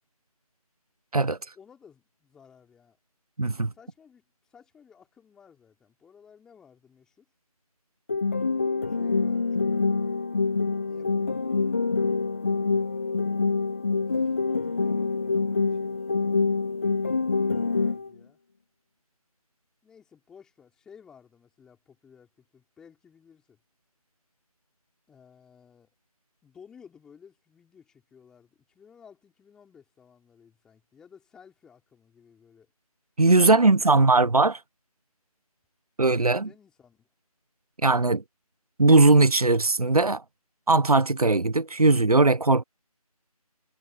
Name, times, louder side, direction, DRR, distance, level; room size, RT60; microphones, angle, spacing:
voice 1, 1.2-3.0 3.7-7.2 8.9-10.2 10.9-12.4 14.1-16.1 16.8-18.4 19.8-23.6 25.1-25.9 26.4-32.7 33.4-34.2 36.3-37.1, left 7 dB, 5° left, 4.7 m, -56 dB
voice 2, 3.4-3.7 33.2-34.6 36.0-36.5 37.8-38.2 38.8-40.2 40.7-42.6, right 3 dB, 75° right, 1.0 m, -19 dB
sound 1, 8.1-18.1, left 4 dB, 20° left, 0.8 m, -26 dB
figure-of-eight pair, 160°, 20 cm